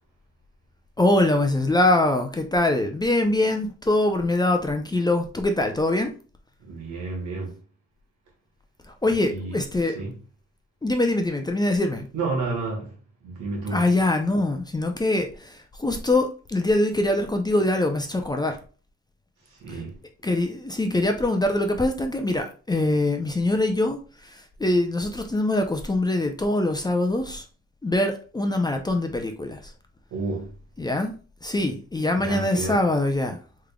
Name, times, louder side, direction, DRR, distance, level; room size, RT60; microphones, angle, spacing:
voice 1, 1.0-6.1 8.9-10.0 10.8-12.1 13.7-18.6 19.7-19.8 20.2-27.4 27.8-29.7 30.8-31.2 31.4-33.4, left 2 dB, 15° left, 0.5 m, -23 dB
voice 2, 6.6-7.6 9.3-9.6 9.9-10.1 12.1-12.9 13.2-13.9 19.6-20.0 30.1-30.5 32.1-32.8, right 3 dB, 80° right, 1.5 m, -30 dB
3.6 x 3.3 x 2.2 m
cardioid pair, 90°, 30 cm